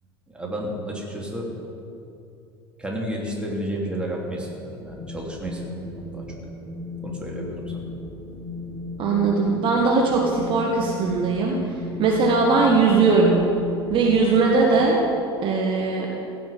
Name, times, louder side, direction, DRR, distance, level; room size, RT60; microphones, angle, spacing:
voice 1, 0.3-1.5 2.8-6.2 7.0-7.9, equal, 5° right, -2 dB, 2.9 m, -31 dB
Wind, 4.9-14.9, left 3 dB, 25° left, 2.5 m, -35 dB
voice 2, 9.0-11.5 12.0-13.4 13.9-15.0 15.4-16.1, right 4 dB, 40° right, -1 dB, 1.6 m, -19 dB
16.0 x 6.1 x 9.3 m, 2.7 s
figure-of-eight pair, 70°, 14 cm